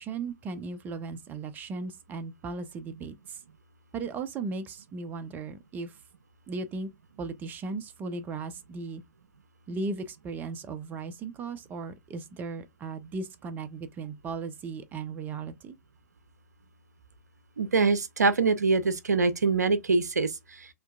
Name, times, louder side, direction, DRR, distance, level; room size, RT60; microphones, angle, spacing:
voice 1, 0.0-3.4 3.9-6.0 6.5-6.9 7.2-9.0 9.7-15.7, right 4 dB, 20° right, 0.5 m, -36 dB
voice 2, 17.6-20.7, right 4 dB, 80° right, 0.5 m, -24 dB
4.4 x 2.7 x 2.3 m
figure-of-eight pair, 110°, 9 cm